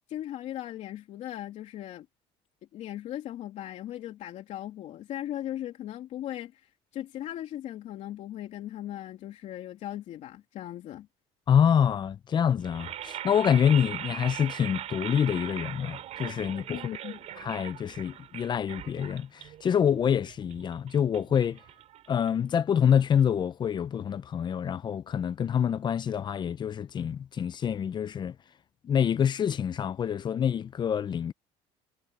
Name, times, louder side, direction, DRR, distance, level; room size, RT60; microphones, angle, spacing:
voice 1, 0.1-2.1 2.7-11.1 16.7-17.2, left 12 dB, 60° left, 2.8 m, -38 dB
voice 2, 11.5-16.8 17.4-21.6 22.1-28.4 28.8-31.3, left 8 dB, 35° left, 0.7 m, -26 dB
sound 1, 12.6-22.7, right 11 dB, 55° right, 4.3 m, -41 dB
cardioid pair, 110°, 13 cm